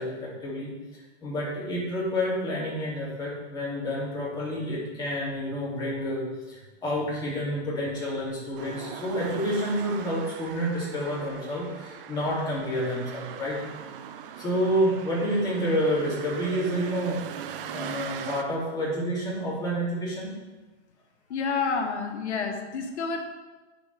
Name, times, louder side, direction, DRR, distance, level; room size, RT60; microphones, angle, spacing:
voice 1, 0.0-13.6 14.4-17.4 17.7-20.3, equal, 10° left, -7 dB, 2.6 m, -29 dB
sound 1, 8.6-18.4, right 9 dB, 55° right, 0.6 m, -40 dB
voice 2, 21.3-23.2, left 5 dB, 80° left, 4 dB, 1.4 m, -29 dB
10.5 x 5.2 x 3.4 m, 1.2 s
hypercardioid pair, 150°, 34 cm